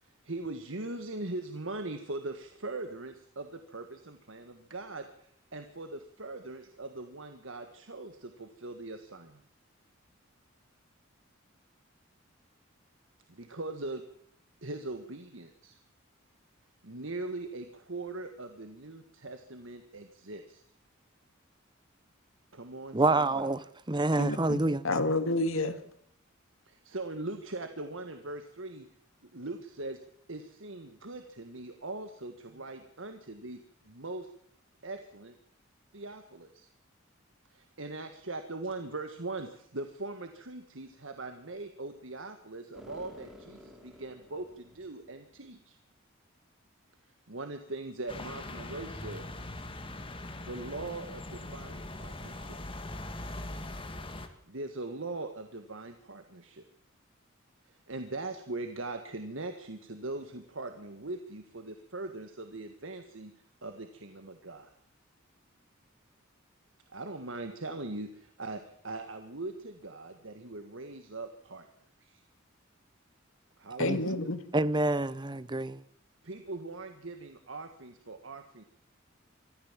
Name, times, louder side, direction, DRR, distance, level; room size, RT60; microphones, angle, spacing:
voice 1, 0.0-9.4 13.3-14.0 14.6-15.8 16.8-20.6 22.5-23.5 26.6-28.9 29.2-30.0 30.3-33.6 33.8-34.3 34.8-35.3 35.9-36.7 37.5-45.8 47.3-49.2 50.4-52.6 54.5-56.7 57.7-63.3 63.6-64.7 66.9-71.7 72.0-72.2 73.6-74.0 76.2-78.6, right 2 dB, 65° right, 1.7 m, -41 dB
voice 2, 22.9-23.6 23.9-24.8 73.8-74.0 74.5-75.8, right 2 dB, 20° right, 0.8 m, -27 dB
voice 3, 24.1-25.8 73.8-74.4, left 2 dB, 80° left, 2.2 m, -30 dB
sound 1, 42.7-45.1, left 1 dB, ahead, 3.8 m, -52 dB
sound 2, 48.1-54.3, left 1 dB, 25° left, 2.2 m, -41 dB
24.5 x 14.5 x 7.5 m
head